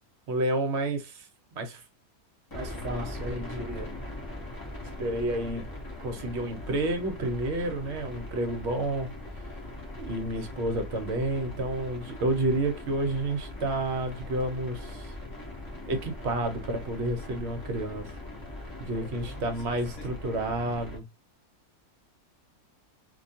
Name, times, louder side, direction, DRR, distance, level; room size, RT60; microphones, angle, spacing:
voice 1, 0.3-1.3 1.5-1.8 2.5-3.9 5.0-5.6 6.0-9.1 10.0-15.1 15.9-18.2 18.8-21.0, right 2 dB, 60° right, 0.8 m, -30 dB
sound 1, 2.5-21.0, left 1 dB, 30° left, 0.4 m, -40 dB
voice 2, 19.0-19.6 20.0-20.4, left 3 dB, 65° left, 1.2 m, -48 dB
2.4 x 2.2 x 2.6 m
omnidirectional pair, 1.6 m